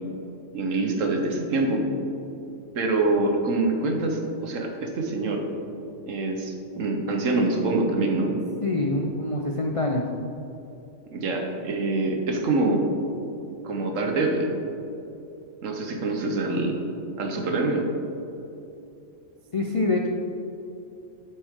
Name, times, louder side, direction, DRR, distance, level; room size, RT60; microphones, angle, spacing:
voice 1, 0.5-1.8 2.7-5.4 6.1-8.3 11.1-12.8 13.6-14.5 15.6-16.8 17.2-17.8, right 2 dB, 80° right, 2 dB, 1.4 m, -25 dB
voice 2, 8.6-10.1 19.5-20.1, left 2 dB, 55° left, 1 dB, 0.3 m, -25 dB
7.9 x 7.8 x 3.7 m, 2.9 s
omnidirectional pair, 1.3 m